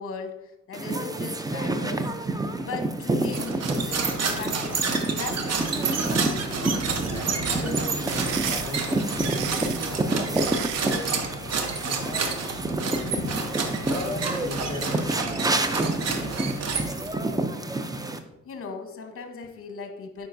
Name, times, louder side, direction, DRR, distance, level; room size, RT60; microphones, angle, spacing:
voice 1, 0.0-2.1 2.6-5.9 9.9-10.0 12.9-13.9 18.4-20.3, left 4 dB, 45° left, 6 dB, 1.0 m, -38 dB
sound 1, 0.7-18.2, right 2 dB, 10° right, 0.5 m, -29 dB
sound 2, 3.3-17.2, right 4 dB, 55° right, 0.9 m, -30 dB
voice 2, 6.6-12.5 12.9-13.2 13.9-16.2, left 1 dB, 15° left, 2 dB, 1.5 m, -38 dB
sound 3, 8.1-11.1, right 10 dB, 80° right, 0.6 m, -35 dB
9.0 x 4.8 x 2.6 m, 0.95 s
cardioid pair, 90°, 30 cm